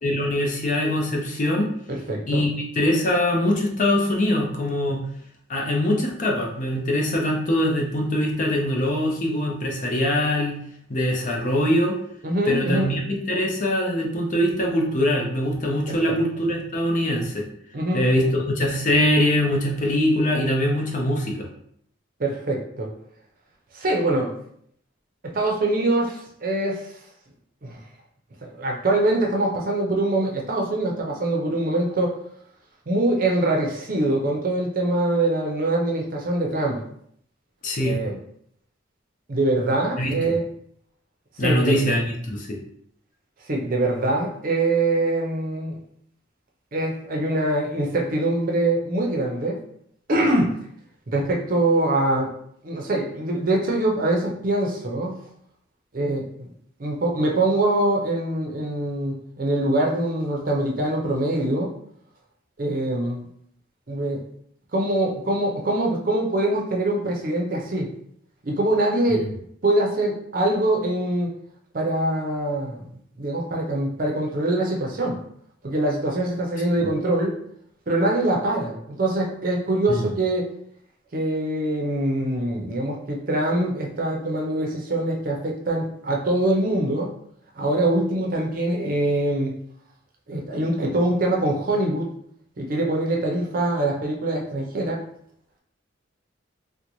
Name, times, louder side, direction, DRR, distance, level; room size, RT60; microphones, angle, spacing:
voice 1, 0.0-1.7 2.3-5.0 5.5-10.6 10.9-12.0 12.5-17.5 17.9-21.5 37.6-38.0 40.0-40.3 41.4-42.6 69.1-69.3 76.8-76.9 79.9-80.1, left 1 dB, 40° left, -1 dB, 0.6 m, -23 dB
voice 2, 1.9-2.5 12.2-12.9 15.9-16.2 17.7-18.0 22.2-22.9 23.7-24.3 25.2-26.9 27.6-27.8 28.4-32.2 32.9-36.8 37.8-38.2 39.3-40.4 41.4-41.8 43.5-45.8 46.7-49.6 50.1-50.5 51.1-52.3 52.6-55.1 55.9-56.5 56.8-61.7 62.6-63.2 63.9-64.2 64.7-67.9 68.4-69.2 69.6-71.3 71.7-75.2 75.6-77.3 77.9-80.5 81.1-87.1 87.6-89.5 90.3-92.1 92.6-95.0, right 1 dB, 45° right, 0 dB, 0.6 m, -23 dB
3.8 x 2.1 x 3.0 m, 0.67 s
head